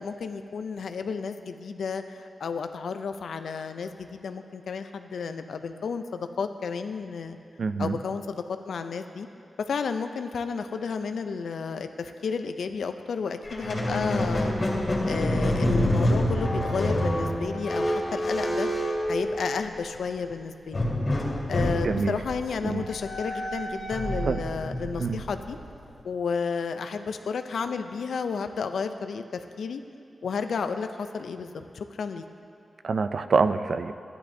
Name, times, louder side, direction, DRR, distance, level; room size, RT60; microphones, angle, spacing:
voice 1, 0.0-7.4 7.8-9.3 9.7-14.5 14.8-20.8 21.5-25.6 26.0-29.8 30.2-32.2, left 5 dB, 85° left, 8 dB, 0.4 m, -32 dB
voice 2, 7.6-8.0 21.8-22.2 22.6-22.8 24.2-24.4 25.0-25.2 32.8-33.9, right 4 dB, 60° right, 10 dB, 0.3 m, -25 dB
Squeak, 13.4-19.8 20.7-25.9, left 1 dB, 40° left, 2.1 m, -27 dB
13.0 x 10.5 x 2.7 m, 2.6 s
wide cardioid pair, 120°, 0 cm